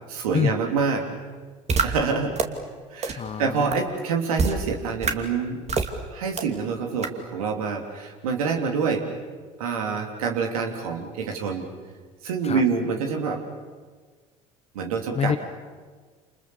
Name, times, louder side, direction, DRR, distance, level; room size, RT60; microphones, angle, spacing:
voice 1, 0.1-1.0 1.8-2.4 2.9-5.6 6.1-9.1 9.6-11.7 12.2-13.4 14.7-15.4, right 5 dB, 80° right, 3 dB, 3.4 m, -26 dB
sound 1, 1.7-1.8 2.4-2.5 3.0-3.1 3.7-3.8 4.4-4.5 5.0-5.1 5.7-5.9 6.4-6.5 7.0-7.1, right 5 dB, 40° right, 2.7 m, -23 dB
voice 2, 3.2-3.8 12.4-12.6 15.1-15.4, left 8 dB, 35° left, 10 dB, 1.2 m, -26 dB
28.5 x 28.5 x 7.2 m, 1.5 s
hypercardioid pair, 65°, 18 cm